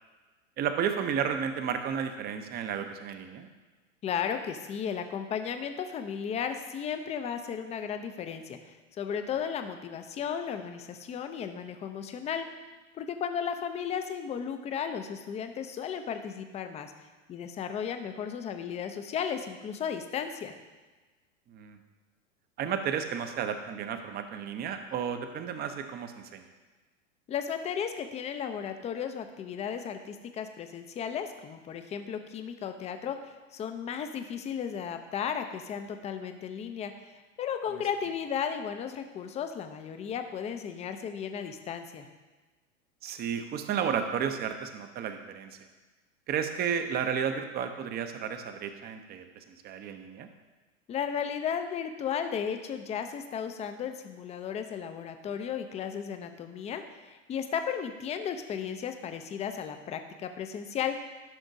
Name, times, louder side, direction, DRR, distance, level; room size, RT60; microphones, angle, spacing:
voice 1, 0.6-3.5 21.5-21.7 22.6-26.4 43.0-45.6 46.3-49.2 49.6-50.3, right 7 dB, 25° right, 7 dB, 0.6 m, -32 dB
voice 2, 4.0-12.5 13.0-16.9 17.3-20.5 27.3-42.1 50.9-61.0, left 7 dB, 15° left, 8 dB, 0.5 m, -35 dB
12.0 x 6.0 x 2.7 m, 1.3 s
hypercardioid pair, 100°, 39 cm